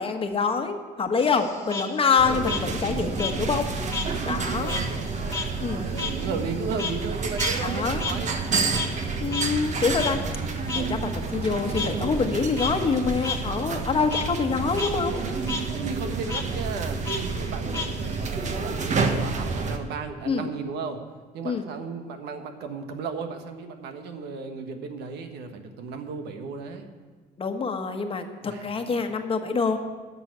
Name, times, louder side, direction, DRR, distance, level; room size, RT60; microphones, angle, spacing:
voice 1, 0.0-3.6 4.2-4.7 5.6-5.8 7.6-8.0 9.2-10.2 10.7-15.2 18.8-19.0 20.2-20.4 21.4-21.7 27.4-29.8, left 5 dB, 35° left, 5 dB, 1.3 m, -26 dB
Frog, 1.2-4.1 4.4-9.1 9.3-9.5 10.0-10.1 10.7-10.8 11.7-11.9 12.4-12.7 13.2-13.4 13.7-14.2 14.6-14.9 15.2-15.6 16.3-16.4 17.1-18.3, left 5 dB, 15° left, 1.8 m, -32 dB
voice 2, 2.1-3.5 4.4-5.0 5.8-8.4 15.1-17.9 18.3-21.0 21.3-26.9 28.4-28.6, right 5 dB, 80° right, 6 dB, 1.4 m, -35 dB
sound 1, 2.2-19.8, right 4 dB, 45° right, 1.4 m, -29 dB
11.0 x 6.9 x 9.7 m, 1.4 s
cardioid pair, 110°, 17 cm